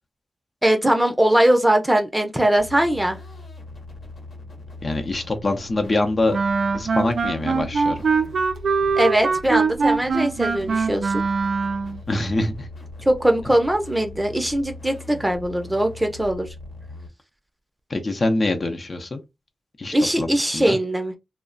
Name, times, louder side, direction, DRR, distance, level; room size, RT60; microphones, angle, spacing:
voice 1, 0.6-3.2 9.0-11.2 13.1-16.5 19.9-21.1, right 1 dB, 15° right, 0.6 m, -20 dB
sound 1, 2.6-17.1, left 2 dB, 70° left, 0.9 m, -40 dB
voice 2, 4.8-6.4 6.7-8.0 12.1-12.7 17.9-19.2 19.8-20.8, left 2 dB, 50° left, 0.6 m, -24 dB
Wind instrument woodwind instrument, 6.3-12.0, right 4 dB, 80° right, 0.4 m, -22 dB
2.3 x 2.1 x 3.7 m
cardioid pair, 65°, 0 cm